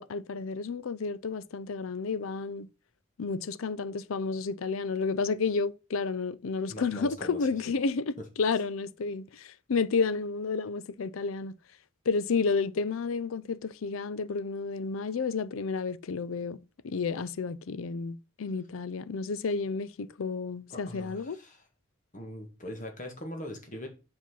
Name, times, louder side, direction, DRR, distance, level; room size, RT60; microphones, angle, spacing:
voice 1, 0.0-2.7 3.2-11.6 12.1-16.6 16.8-21.4, left 4 dB, 80° left, 0.5 m, -31 dB
voice 2, 6.7-7.5 8.2-8.3 20.7-21.6 22.1-23.9, left 1 dB, 35° left, 1.7 m, -41 dB
7.4 x 4.3 x 5.4 m
head